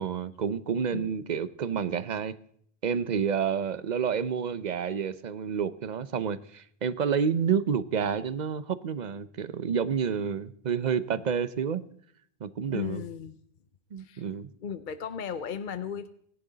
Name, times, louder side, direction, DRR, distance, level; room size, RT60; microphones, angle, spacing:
voice 1, 0.0-2.3 2.8-11.8 12.4-13.0 13.9-14.5, right 7 dB, 45° right, 15 dB, 0.7 m, -29 dB
voice 2, 0.9-1.3 12.7-13.4 14.0-14.2 14.6-16.1, left 7 dB, 50° left, 11 dB, 0.8 m, -36 dB
25.5 x 11.5 x 4.0 m, 0.65 s
omnidirectional pair, 1.1 m